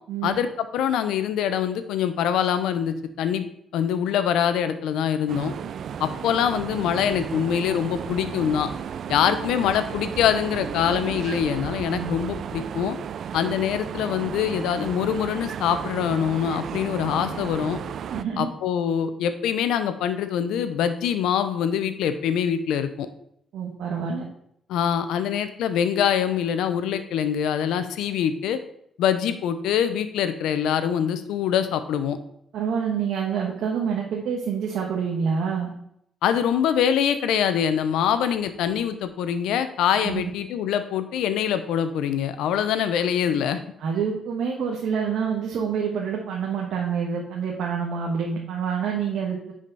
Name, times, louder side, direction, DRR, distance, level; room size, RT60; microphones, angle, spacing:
voice 1, 0.2-3.5 3.7-5.5 6.0-8.7 9.1-13.0 13.3-17.8 18.4-23.1 24.7-28.6 29.0-32.2 36.2-43.6, left 9 dB, 85° left, 10 dB, 0.7 m, -24 dB
sound 1, 5.3-18.2, right 8 dB, 60° right, 0.4 m, -34 dB
voice 2, 18.1-18.5 23.5-24.2 32.5-35.7 40.0-40.3 43.8-49.5, right 6 dB, 75° right, 0 dB, 1.3 m, -27 dB
10.0 x 5.0 x 4.1 m, 0.72 s
cardioid pair, 90°, 0 cm